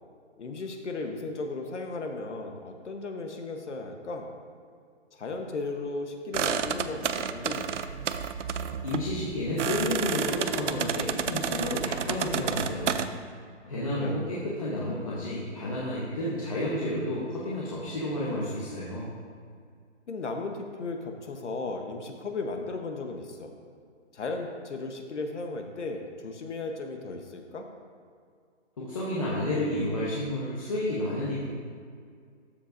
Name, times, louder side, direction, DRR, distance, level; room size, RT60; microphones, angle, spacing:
voice 1, 0.4-4.3 5.1-7.7 13.6-14.2 20.1-23.6 24.1-27.7, left 3 dB, 70° left, 4 dB, 1.2 m, -36 dB
sound 1, 6.3-13.1, right 7 dB, 75° right, 0.6 m, -31 dB
voice 2, 8.8-13.0 13.7-19.1 28.8-31.6, left 1 dB, 30° left, -7 dB, 1.0 m, -31 dB
13.0 x 7.2 x 2.7 m, 2.2 s
hypercardioid pair, 175°, 36 cm